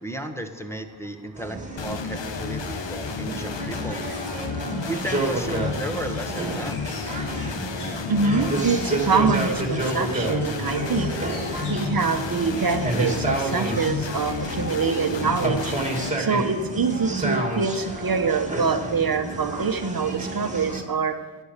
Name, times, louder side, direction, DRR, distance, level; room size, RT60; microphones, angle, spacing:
voice 1, 0.0-4.0 4.9-7.1, right 1 dB, 5° left, 4 dB, 1.1 m, -34 dB
sound 1, 1.4-20.8, right 2 dB, 15° right, 2.3 m, -30 dB
sound 2, 1.8-16.1, left 6 dB, 60° left, 1.1 m, -32 dB
Bird, 4.3-12.4, left 1 dB, 80° left, 4.9 m, -45 dB
voice 2, 8.1-11.1 11.7-15.8 16.2-21.1, right 5 dB, 45° right, 7 dB, 1.0 m, -25 dB
17.5 x 10.0 x 6.7 m, 1.2 s
wide cardioid pair, 165°, 49 cm